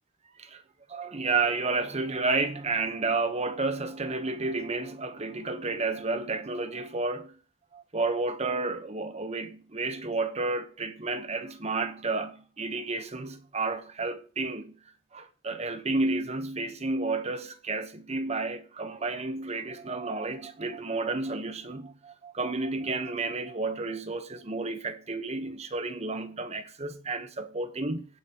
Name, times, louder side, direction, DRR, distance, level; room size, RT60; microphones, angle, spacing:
voice 1, 0.9-7.3 7.7-14.7 15.1-28.0, right 3 dB, 35° right, 1.1 m, -31 dB
18.5 x 6.2 x 3.0 m
head